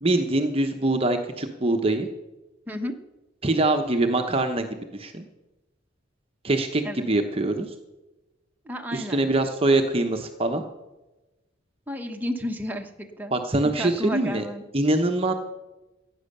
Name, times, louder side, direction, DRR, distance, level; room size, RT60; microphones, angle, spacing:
voice 1, 0.0-2.1 3.4-4.7 4.9-5.2 6.4-7.7 8.9-10.6 13.3-14.4 14.7-15.3, right 2 dB, 30° right, 5 dB, 0.9 m, -23 dB
voice 2, 8.6-9.3 11.9-12.9 13.2-13.3 13.6-14.6, equal, 10° right, 3 dB, 1.1 m, -32 dB
15.5 x 9.2 x 6.7 m, 1.1 s
head